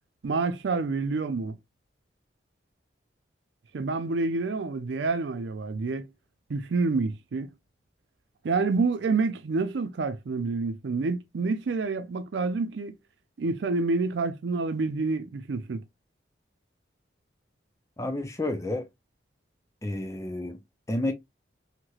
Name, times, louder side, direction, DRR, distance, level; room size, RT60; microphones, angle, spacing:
voice 1, 0.2-1.5 3.7-6.1 6.5-7.5 8.4-12.9 13.4-15.8, right 3 dB, 80° right, 0.4 m, -28 dB
voice 2, 18.0-18.9 19.8-20.6 20.9-21.1, left 1 dB, 15° left, 0.4 m, -30 dB
3.0 x 2.9 x 2.3 m
head